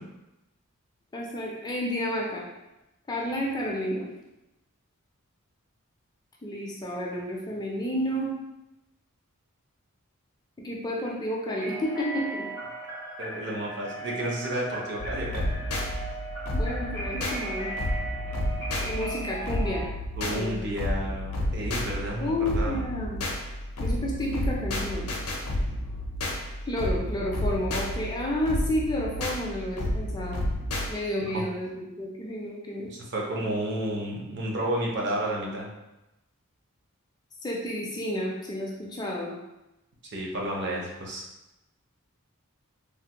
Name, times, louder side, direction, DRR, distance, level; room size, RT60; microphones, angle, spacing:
voice 1, 1.1-2.4 3.1-4.1 6.4-8.3 10.6-12.5 16.5-17.7 18.8-19.9 20.2-20.6 22.2-23.3 23.8-25.2 26.7-30.4 30.9-32.9 37.4-39.4, equal, 20° left, -3 dB, 0.4 m, -31 dB
sound 1, 11.6-19.9, right 2 dB, 75° right, 1.4 m, -37 dB
voice 2, 13.2-15.4 20.2-22.8 31.3-31.5 32.9-35.7 40.1-41.2, right 1 dB, 50° right, -2 dB, 0.6 m, -31 dB
sound 2, 15.0-30.9, left 1 dB, 75° left, 0.5 m, -31 dB
3.2 x 2.1 x 2.8 m, 0.95 s
head